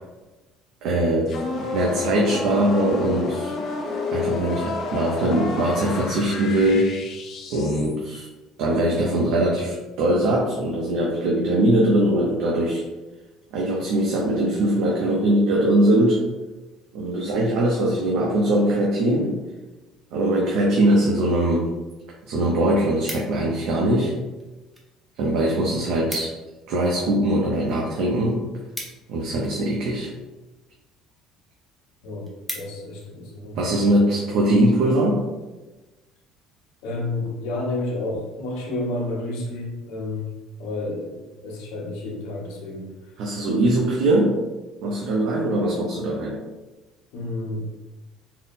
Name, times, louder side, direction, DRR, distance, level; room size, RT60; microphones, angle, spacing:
voice 1, 0.8-1.3 1.7-3.5 4.1-6.9 7.5-8.3 8.6-12.8 13.5-16.2 16.9-19.4 20.1-21.7 22.3-24.2 25.2-26.3 26.7-28.4 29.1-30.1 33.6-35.2 43.2-44.4 44.8-46.4, right 1 dB, 70° right, -3 dB, 0.7 m, -21 dB
sound 1, 1.3-8.0, left 4 dB, 45° left, 0.5 m, -30 dB
sound 2, 23.1-23.7 24.4-24.9 25.2-25.3 25.6-25.7 25.9-26.5 26.9-29.7 30.4-30.8 31.3-31.4 31.7-31.8 32.1-33.1 33.6-33.8, equal, 5° right, 0.6 m, -38 dB
voice 2, 32.5-33.8 36.8-40.3 40.6-42.9 43.5-43.6 47.1-47.7, left 2 dB, 90° left, -1 dB, 0.9 m, -30 dB
3.8 x 2.1 x 4.1 m, 1.2 s
cardioid pair, 165°, 0 cm